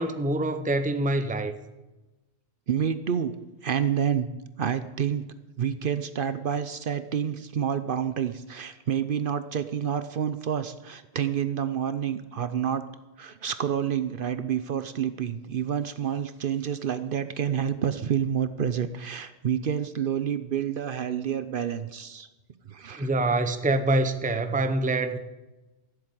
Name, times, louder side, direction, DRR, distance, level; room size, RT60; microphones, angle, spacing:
voice 1, 0.0-1.5 23.0-25.2, right 2 dB, 10° right, 9 dB, 0.7 m, -25 dB
voice 2, 2.7-3.3 3.6-4.3 4.6-5.3 5.6-12.8 13.2-22.3 22.7-23.1, right 8 dB, 60° right, 12 dB, 0.8 m, -28 dB
14.5 x 7.8 x 9.0 m, 1.1 s
omnidirectional pair, 1.1 m